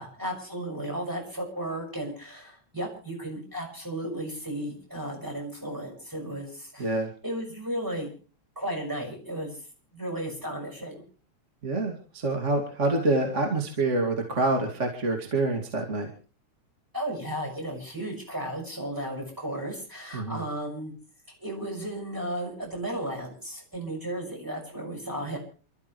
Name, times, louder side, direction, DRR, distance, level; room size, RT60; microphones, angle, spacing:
voice 1, 0.0-6.9 7.2-8.1 8.6-9.6 9.9-11.0 16.9-20.9 21.4-25.4, right 1 dB, 5° right, 0 dB, 6.0 m, -34 dB
voice 2, 6.8-7.1 11.6-16.1 20.1-20.4, right 2 dB, 25° right, 3 dB, 2.4 m, -26 dB
28.5 x 13.5 x 3.2 m, 0.36 s
omnidirectional pair, 3.3 m